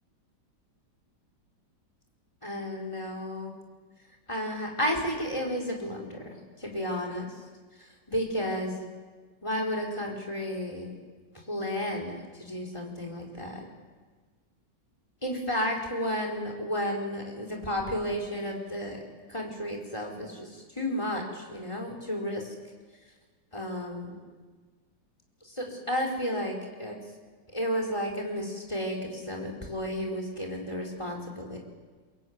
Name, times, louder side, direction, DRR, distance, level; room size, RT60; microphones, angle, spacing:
voice 1, 2.4-3.5 4.3-7.3 7.8-8.8 9.4-10.9 11.5-12.1 12.4-13.6 15.2-19.0 19.3-22.5 23.5-24.2 25.4-27.0 27.5-31.6, equal, 15° left, 1 dB, 4.5 m, -32 dB
22.5 x 22.5 x 9.6 m, 1.4 s
omnidirectional pair, 1.9 m